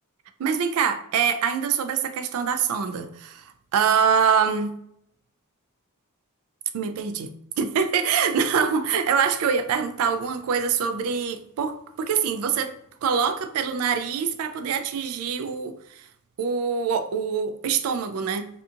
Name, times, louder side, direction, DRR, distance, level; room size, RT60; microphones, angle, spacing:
voice 1, 0.4-4.7 6.7-12.7 13.0-16.1 16.4-18.5, right 6 dB, 70° right, 0.3 m, -24 dB
2.7 x 2.4 x 2.5 m
head